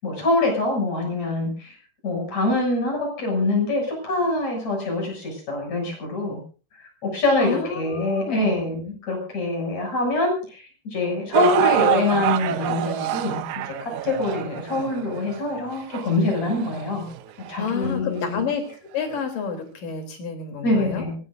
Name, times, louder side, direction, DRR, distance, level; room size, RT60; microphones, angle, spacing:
voice 1, 0.0-1.8 2.0-6.4 7.0-17.1 17.5-18.4 20.6-21.2, left 2 dB, 50° left, 1 dB, 8.3 m, -24 dB
voice 2, 7.4-8.6 17.5-18.6 18.9-21.0, left 6 dB, 70° left, 5 dB, 5.0 m, -29 dB
sound 1, 11.3-17.6 18.2-18.3 19.1-19.2, right 13 dB, 70° right, 2.1 m, -26 dB
24.5 x 19.0 x 2.6 m, 0.36 s
omnidirectional pair, 3.9 m